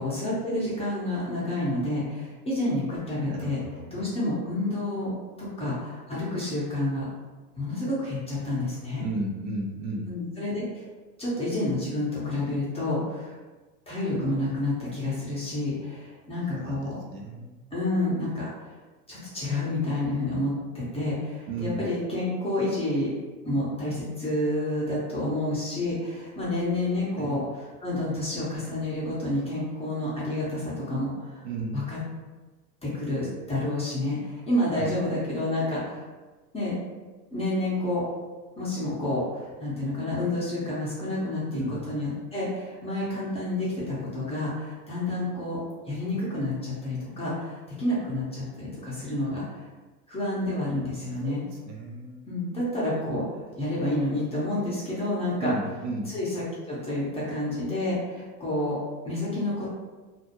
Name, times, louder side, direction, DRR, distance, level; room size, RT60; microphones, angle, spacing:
voice 1, 0.0-3.6 3.9-5.1 5.4-7.1 7.6-9.0 10.1-10.8 11.2-13.4 13.9-17.0 17.7-18.7 19.1-23.1 23.4-27.4 27.8-31.4 31.7-32.0 32.8-36.0 36.5-36.7 37.3-38.0 38.6-45.6 45.8-49.6 50.1-51.4 52.3-53.3 53.5-55.5 56.1-58.8 59.0-59.7, left 1 dB, 10° left, -8 dB, 0.6 m, -29 dB
voice 2, 3.3-4.0 9.0-10.1 16.5-17.7 21.5-21.9 27.2-27.4 31.4-31.9 34.7-34.9 41.5-41.8 51.2-52.2 55.4-56.2, right 2 dB, 50° right, -1 dB, 0.6 m, -34 dB
2.4 x 2.0 x 2.8 m, 1.2 s
hypercardioid pair, 105°, 49 cm